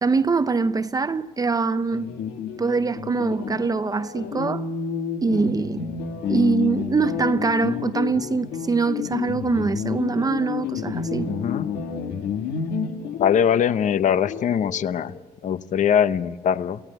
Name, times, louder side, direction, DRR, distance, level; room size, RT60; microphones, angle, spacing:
voice 1, 0.0-2.1 2.6-4.7 5.2-5.9 6.3-11.3, right 4 dB, 20° right, 0.7 m, -23 dB
sound 1, 1.9-15.2, left 7 dB, 75° left, 1.8 m, -30 dB
voice 2, 11.3-11.7 13.2-15.1 15.4-16.8, left 8 dB, 45° left, 0.8 m, -22 dB
27.5 x 16.0 x 7.9 m
cardioid pair, 110°, 17 cm